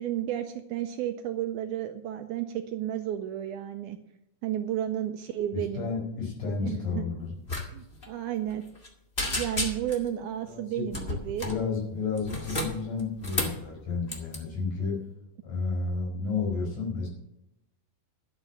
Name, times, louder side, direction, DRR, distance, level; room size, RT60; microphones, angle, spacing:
voice 1, 0.0-4.0 4.4-5.9 6.6-7.0 7.7-8.6 9.2-11.5, right 11 dB, 80° right, 7 dB, 1.9 m, -32 dB
voice 2, 5.5-7.4 10.4-10.8 11.4-15.0 15.4-17.1, left 4 dB, 65° left, -1 dB, 6.0 m, -31 dB
Tape Cassette Insert, 7.5-7.7 7.9-8.1 8.5-8.9 9.2-10.1 10.9-11.6 12.2-13.6 14.1-14.4, left 1 dB, 25° left, 1.2 m, -32 dB
12.0 x 6.6 x 7.2 m, 0.82 s
omnidirectional pair, 4.0 m